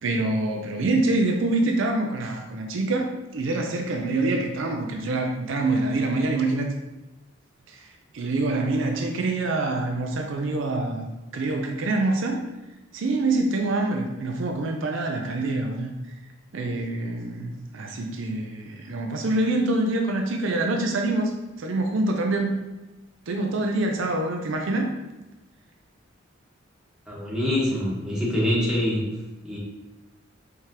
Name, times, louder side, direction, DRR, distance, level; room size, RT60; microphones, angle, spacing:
voice 1, 0.0-6.7 7.7-7.8 8.1-12.4 12.9-15.9 16.5-21.3 21.6-22.5 23.3-24.9, right 2 dB, 75° right, 3 dB, 0.5 m, -25 dB
voice 2, 27.1-29.0 29.4-29.6, left 1 dB, 5° right, -7 dB, 1.2 m, -25 dB
4.8 x 3.5 x 2.9 m, 1.1 s
head